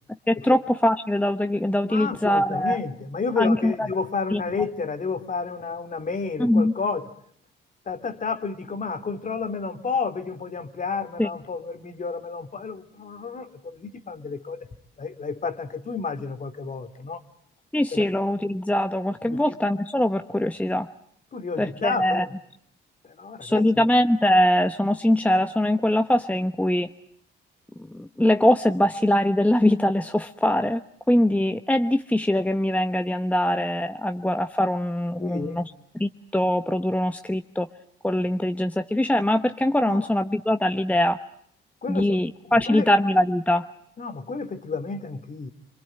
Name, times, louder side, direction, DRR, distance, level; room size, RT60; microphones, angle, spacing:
voice 1, 0.3-2.8 3.4-3.7 4.3-4.4 6.4-6.7 11.2-11.3 17.7-20.9 21.6-22.3 23.4-26.9 27.9-30.8 31.1-35.7 36.0-37.7 38.0-41.2 41.9-43.7, left 1 dB, 5° left, 8 dB, 1.1 m, -22 dB
voice 2, 1.9-7.1 7.9-14.7 15.0-17.2 17.9-18.1 19.3-19.5 21.3-22.3 23.0-23.9 35.2-35.6 39.9-40.1 41.8-42.9 44.0-45.5, left 4 dB, 40° left, 9 dB, 2.8 m, -31 dB
26.5 x 23.5 x 9.1 m, 0.66 s
cardioid pair, 90°, 20 cm